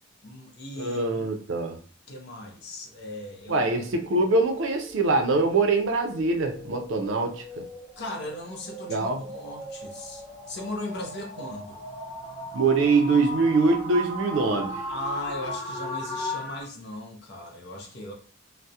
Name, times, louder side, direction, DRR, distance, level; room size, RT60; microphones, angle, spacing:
voice 1, 0.2-1.1 2.1-3.7 8.0-11.8 14.9-18.1, left 1 dB, 55° left, 0.6 m, -38 dB
voice 2, 0.8-1.8 3.5-7.6 8.9-9.2 12.5-14.8, right 3 dB, 70° right, 0.4 m, -23 dB
sound 1, 3.4-16.6, equal, 25° right, 0.9 m, -38 dB
2.3 x 2.0 x 2.7 m
head